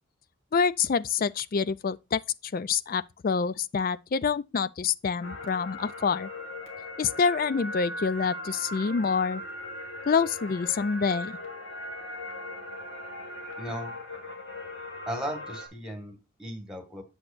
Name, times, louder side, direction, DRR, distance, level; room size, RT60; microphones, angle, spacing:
voice 1, 0.5-6.3 7.0-9.4 10.1-11.4, left 5 dB, 40° left, 0.3 m, -27 dB
sound 1, 5.2-15.7, left 1 dB, 60° left, 2.0 m, -39 dB
voice 2, 13.6-13.9 15.1-17.0, equal, 5° right, 1.6 m, -36 dB
7.9 x 7.4 x 2.5 m
head